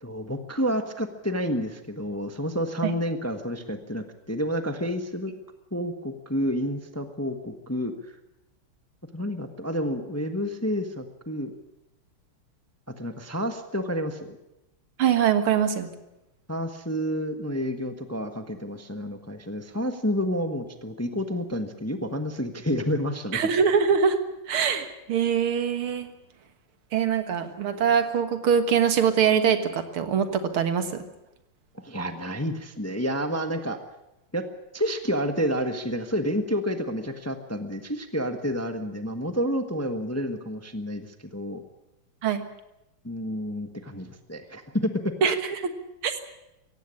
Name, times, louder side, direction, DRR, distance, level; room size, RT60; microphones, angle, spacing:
voice 1, 0.0-5.3 5.7-7.9 9.1-11.5 13.0-14.4 16.5-23.4 31.7-33.8 34.3-34.5 34.7-41.6 43.0-45.1, equal, 10° left, 7 dB, 0.9 m, -29 dB
voice 2, 15.0-15.9 23.3-24.2 24.5-26.1 26.9-30.9 42.2-42.5 45.2-45.8 46.0-46.2, right 7 dB, 80° right, 9 dB, 2.4 m, -23 dB
17.0 x 16.0 x 10.0 m, 0.91 s
omnidirectional pair, 2.3 m